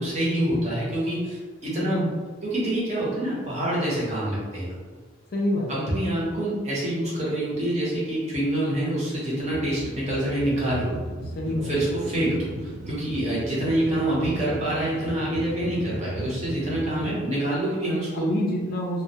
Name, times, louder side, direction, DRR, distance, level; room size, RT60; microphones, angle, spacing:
voice 1, 0.0-2.1 2.4-4.7 5.7-10.9 11.6-18.3, right 1 dB, 30° right, -7 dB, 0.7 m, -26 dB
voice 2, 1.8-2.2 5.3-5.9 11.3-12.0 18.1-19.0, left 1 dB, 45° left, -2 dB, 0.3 m, -27 dB
sound 1, 9.5-17.1, right 2 dB, 75° right, 0.3 m, -37 dB
2.2 x 2.1 x 2.7 m, 1.5 s
head